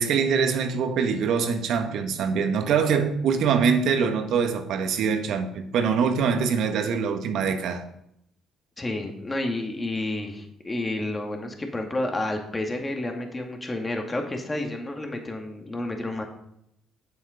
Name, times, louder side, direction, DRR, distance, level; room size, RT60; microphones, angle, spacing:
voice 1, 0.0-7.8, right 6 dB, 70° right, 1.4 m, -24 dB
voice 2, 8.8-16.2, left 2 dB, 25° left, 2.3 m, -30 dB
9.3 x 7.2 x 5.2 m
supercardioid pair, 65°, 0 cm